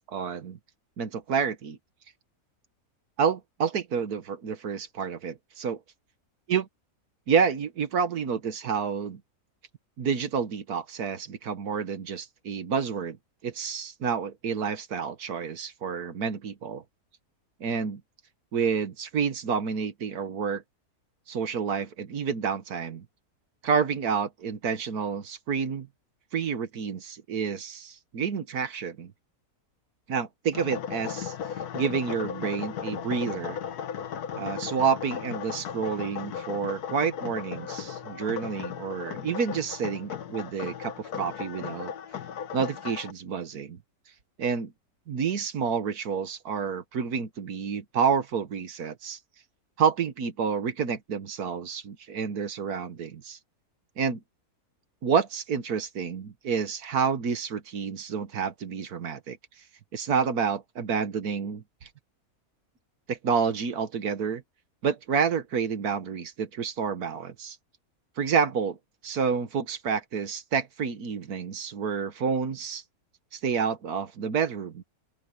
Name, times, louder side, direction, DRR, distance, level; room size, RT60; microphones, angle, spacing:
voice 1, 0.1-0.6 1.0-1.8 3.2-5.8 6.5-6.6 7.3-9.2 10.0-13.2 13.4-16.8 17.6-18.0 18.5-20.6 21.3-23.1 23.6-25.9 26.3-29.1 30.1-31.3 31.7-33.6 34.4-41.9 42.5-43.8 44.4-44.7 45.1-49.2 49.8-53.4 54.0-54.2 55.0-59.4 59.9-61.6 63.1-64.4 64.8-67.6 68.2-68.8 69.0-72.8 73.3-74.8, right 6 dB, 85° right, 1.8 m, -29 dB
sound 1, 30.5-43.1, left 8 dB, 90° left, 1.6 m, -36 dB
open air
omnidirectional pair, 1.6 m